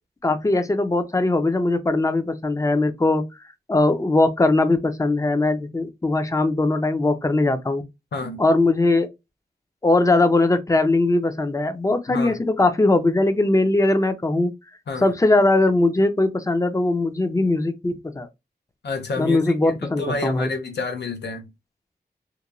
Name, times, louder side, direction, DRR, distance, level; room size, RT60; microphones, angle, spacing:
voice 1, 0.2-3.2 3.7-7.8 8.4-9.1 9.8-14.5 15.0-18.3 19.2-20.5, left 2 dB, 20° left, 0.4 m, -20 dB
voice 2, 8.1-8.4 12.1-12.4 14.9-15.1 18.8-21.5, left 3 dB, 85° left, 0.6 m, -29 dB
2.9 x 2.2 x 2.4 m
wide cardioid pair, 60°, 17 cm